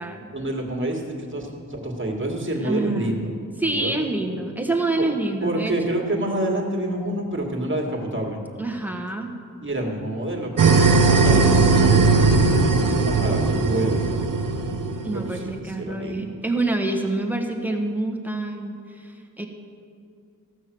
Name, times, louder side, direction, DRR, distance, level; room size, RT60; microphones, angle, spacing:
voice 1, 0.3-4.1 5.0-5.1 5.4-8.4 9.6-10.8 11.1-12.4 13.0-14.2 15.1-16.4, right 1 dB, 40° right, 1 dB, 2.1 m, -28 dB
voice 2, 2.6-3.1 3.6-6.0 8.6-9.3 11.3-11.6 15.0-19.4, right 2 dB, 5° right, 2 dB, 1.4 m, -27 dB
sound 1, 10.6-15.4, right 3 dB, 75° right, 0.9 m, -18 dB
14.5 x 6.3 x 7.7 m, 2.3 s
wide cardioid pair, 75°, 32 cm